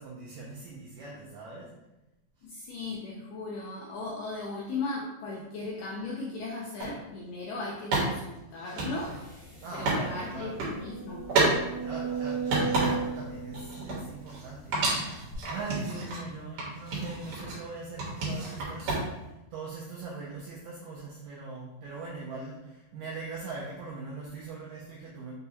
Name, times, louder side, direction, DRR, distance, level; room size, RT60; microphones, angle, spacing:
voice 1, 0.0-1.8 2.4-2.5 9.6-10.6 11.8-25.3, right 3 dB, 90° right, -3 dB, 1.9 m, -41 dB
voice 2, 2.4-11.3, left 3 dB, 90° left, -3 dB, 1.9 m, -37 dB
sound 1, 6.8-6.9 7.9-10.0 10.4-10.8 11.3-11.6 12.0-13.2 13.5-14.5 14.7-16.2 16.6-17.6 18.0-19.3, right 2 dB, 65° right, 2.5 m, -30 dB
sound 2, 9.3-9.4 9.8-9.9 10.4-14.6 15.3-15.4, right 6 dB, 75° left, 1.6 m, -35 dB
6.4 x 2.3 x 2.8 m, 0.95 s
omnidirectional pair, 4.5 m